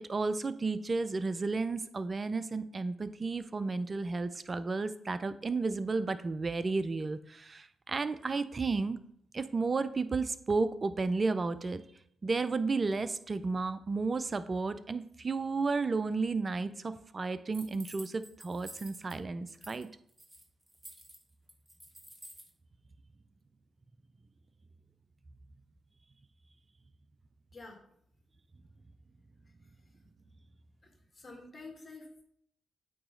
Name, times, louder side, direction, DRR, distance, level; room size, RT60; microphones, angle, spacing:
voice 1, 0.1-9.0 9.3-11.8 12.2-19.9, right 3 dB, 40° right, 13 dB, 0.5 m, -32 dB
sound 1, 17.5-19.2 19.5-19.8 20.1-22.5, right 1 dB, 15° right, 1.6 m, -51 dB
voice 2, 27.5-27.9 29.6-30.0 30.8-32.2, left 3 dB, 40° left, 2 dB, 1.7 m, -50 dB
8.6 x 2.9 x 3.8 m, 0.69 s
hypercardioid pair, 40°, 0 cm